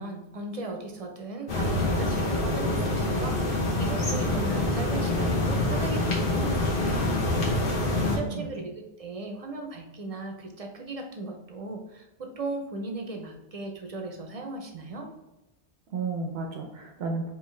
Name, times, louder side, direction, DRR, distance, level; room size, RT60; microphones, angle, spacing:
voice 1, 0.0-7.2 8.0-15.1, right 2 dB, 45° right, 3 dB, 0.6 m, -37 dB
sound 1, 1.5-8.2, left 2 dB, 60° left, 1.2 m, -26 dB
voice 2, 7.9-8.5 15.9-17.3, right 3 dB, 80° right, 3 dB, 0.8 m, -33 dB
4.6 x 2.8 x 3.2 m, 0.98 s
omnidirectional pair, 1.0 m